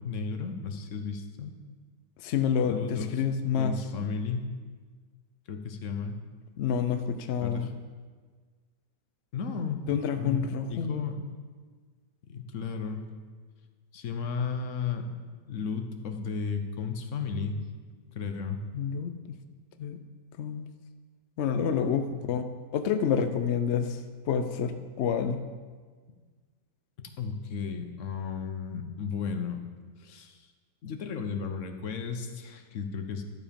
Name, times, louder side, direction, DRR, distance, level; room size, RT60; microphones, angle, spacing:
voice 1, 0.0-1.5 2.6-3.2 3.6-4.5 5.5-6.2 7.4-7.7 9.3-9.8 10.2-10.4 10.7-11.2 12.3-13.0 13.9-15.1 15.5-17.6 18.1-18.6 22.1-22.2 27.0-29.6 30.0-30.5 30.8-33.2, left 6 dB, 55° left, 6 dB, 1.0 m, -34 dB
voice 2, 2.2-3.8 6.6-7.7 9.9-11.0 18.7-19.4 19.8-20.0 20.4-20.7 21.4-22.4 22.7-24.0 24.3-25.4, left 7 dB, 75° left, 9 dB, 0.6 m, -28 dB
12.0 x 7.1 x 5.2 m, 1.5 s
omnidirectional pair, 1.8 m